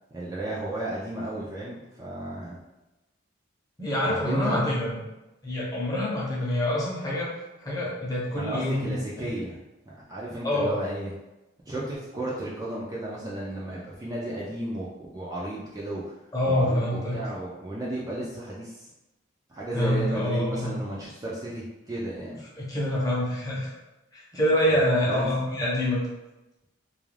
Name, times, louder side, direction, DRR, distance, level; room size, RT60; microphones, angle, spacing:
voice 1, 0.1-2.6 4.0-4.6 8.4-9.6 9.9-11.1 11.7-16.1 16.5-18.9 19.5-22.4 24.7-25.3, right 1 dB, 20° right, -6 dB, 0.3 m, -33 dB
voice 2, 3.8-5.0 5.4-7.3 7.6-8.9 9.2-9.3 10.4-10.8 16.3-17.2 19.7-20.7 22.6-23.7 24.1-26.0, left 1 dB, 20° left, -6 dB, 0.7 m, -26 dB
2.4 x 2.2 x 3.2 m, 0.99 s
head